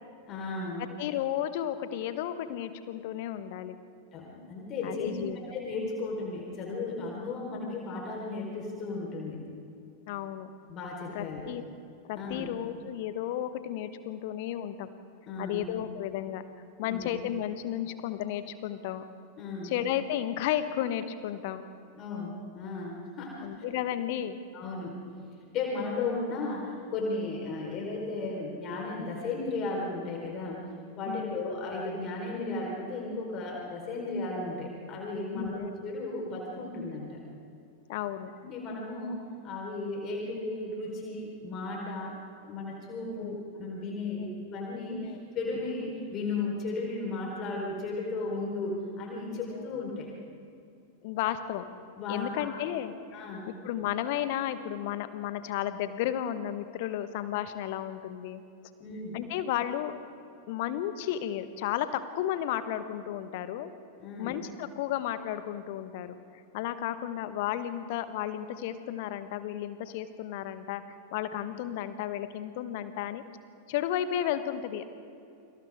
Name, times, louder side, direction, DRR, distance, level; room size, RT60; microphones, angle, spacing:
voice 1, 0.2-0.9 4.1-5.1 5.5-9.4 10.7-11.4 12.1-12.5 15.3-15.7 16.8-17.1 19.4-19.7 22.0-23.5 24.5-25.0 25.5-30.6 30.9-37.2 38.4-50.1 52.0-52.5 53.1-53.5 58.8-59.2 64.0-64.4, left 3 dB, 35° left, -1 dB, 4.4 m, -35 dB
voice 2, 1.0-3.7 4.8-5.4 10.1-10.5 11.1-11.6 12.1-14.9 15.4-16.4 16.8-19.0 19.6-21.6 23.4-24.4 31.1-31.4 35.3-35.8 37.9-38.3 43.2-43.4 44.2-44.3 45.0-45.2 51.0-51.6 52.1-52.9 53.5-58.4 59.1-59.9 60.4-63.7 64.2-73.2 73.7-74.8, left 11 dB, 50° left, 11 dB, 1.4 m, -33 dB
29.0 x 25.5 x 3.7 m, 2.6 s
figure-of-eight pair, 90°, 0 cm